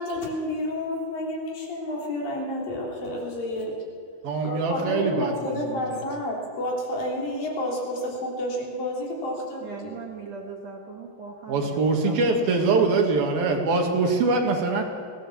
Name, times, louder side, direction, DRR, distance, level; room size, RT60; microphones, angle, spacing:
voice 1, 0.0-3.8 4.4-9.9, left 1 dB, 65° left, -2 dB, 5.0 m, -30 dB
voice 2, 4.2-6.0 11.5-14.8, right 3 dB, 70° right, 2 dB, 4.0 m, -23 dB
voice 3, 9.6-12.6, right 4 dB, 55° right, 1 dB, 2.2 m, -40 dB
22.0 x 17.5 x 7.2 m, 2.2 s
omnidirectional pair, 4.4 m